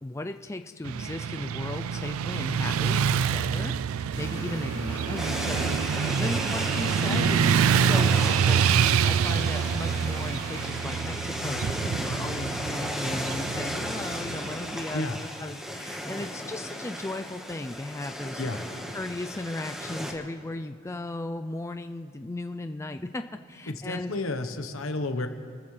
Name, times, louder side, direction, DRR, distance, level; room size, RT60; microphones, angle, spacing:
voice 1, 0.0-18.4 18.9-24.1, left 2 dB, 15° left, 7 dB, 0.4 m, -36 dB
Motorcycle / Traffic noise roadway noise, 0.8-15.0, right 7 dB, 80° right, 0.4 m, -26 dB
sound 1, 4.1-10.7, right 1 dB, 60° right, 4.7 m, -42 dB
sound 2, 5.2-20.1, equal, 5° right, 1.4 m, -35 dB
voice 2, 7.1-7.4 14.9-15.2 18.4-18.6 23.7-25.3, left 2 dB, 75° left, 8 dB, 1.1 m, -31 dB
28.5 x 14.5 x 3.3 m, 2.6 s
head